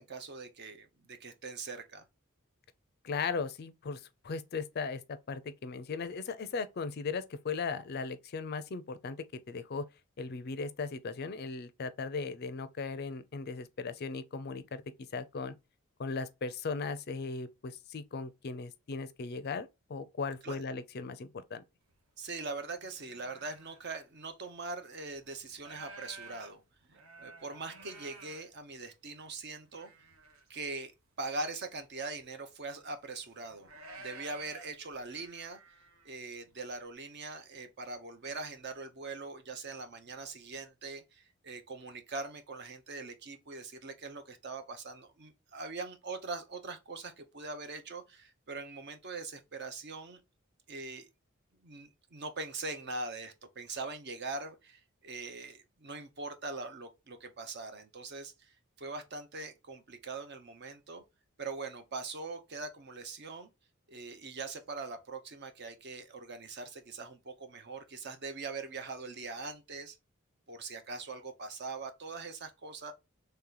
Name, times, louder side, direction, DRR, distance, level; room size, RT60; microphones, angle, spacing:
voice 1, 0.0-2.0 20.4-20.6 22.2-26.6 27.2-29.9 30.5-30.9 31.2-33.7 34.0-35.6 36.0-50.2 50.7-51.1 51.6-61.0 61.4-63.5 63.9-70.0 70.5-72.9, right 3 dB, 50° right, 0.7 m, -42 dB
voice 2, 3.0-9.9 10.2-14.8 15.1-15.6 16.0-21.6, left 4 dB, 50° left, 0.4 m, -37 dB
sound 1, 21.9-22.0 22.4-23.8 24.5-24.6 25.1-29.1 29.6-30.5 30.8-30.9 31.3-31.4 31.7-32.4 33.0-36.1, right 3 dB, 80° right, 1.0 m, -52 dB
3.3 x 2.9 x 3.7 m
head